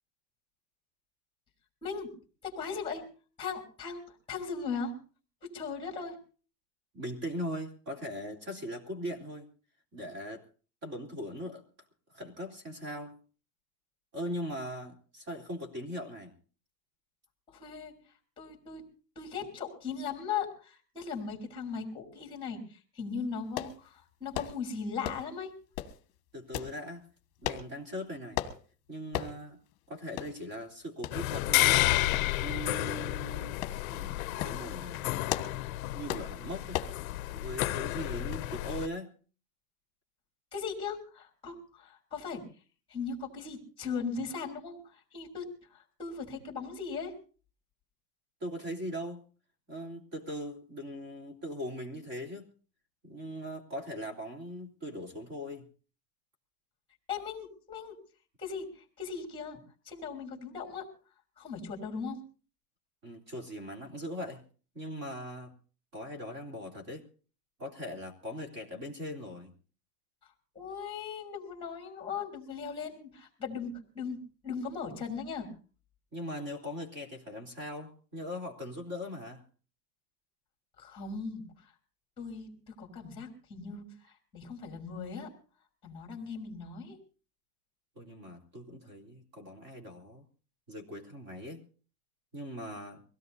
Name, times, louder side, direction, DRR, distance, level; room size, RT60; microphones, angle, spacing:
voice 1, 1.8-2.1 2.4-3.0 3.4-4.9 5.4-6.2 17.5-17.9 18.4-18.8 19.1-25.5 40.5-42.4 42.9-47.1 57.1-57.9 58.4-59.6 59.8-60.9 61.4-62.2 70.5-75.5 80.8-81.7 82.2-85.3 85.8-87.0, left 5 dB, 10° left, 3 dB, 3.2 m, -38 dB
voice 2, 6.9-9.5 9.9-10.4 10.8-11.6 12.1-13.2 14.1-16.3 26.3-27.0 27.4-28.4 28.9-29.6 29.9-31.9 32.4-33.6 33.9-35.2 35.9-36.8 37.3-39.1 48.4-49.2 49.7-52.5 53.0-55.7 63.0-64.4 64.7-65.5 65.9-67.1 67.6-69.5 76.1-79.4 88.0-90.2 90.7-91.6 92.3-93.0, equal, 30° right, 3 dB, 3.5 m, -40 dB
sound 1, 23.6-23.8 24.3-24.6 25.0-25.3 25.8-26.0 26.5-26.7 27.4-27.7 28.4-28.6 29.1-29.3 29.7-29.8 30.2-30.3 31.0-31.2 32.1-32.5 32.9-33.0 33.6-33.8 34.3-34.6 35.1-35.6 36.1-36.3 36.7-37.0 37.6-37.8 38.3-38.5 38.8-38.9, left 12 dB, 30° left, 1.6 m, -35 dB
sound 2, 31.1-38.9, left 17 dB, 55° left, 0.6 m, -31 dB
23.5 x 17.0 x 2.7 m, 0.39 s
supercardioid pair, 175°, 49 cm